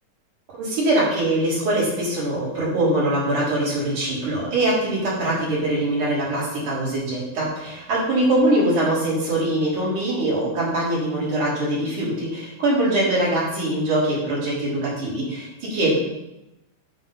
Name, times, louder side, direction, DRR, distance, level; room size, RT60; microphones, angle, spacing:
voice 1, 0.6-16.0, right 1 dB, 80° right, -8 dB, 6.2 m, -22 dB
10.0 x 7.9 x 5.6 m, 0.94 s
omnidirectional pair, 3.5 m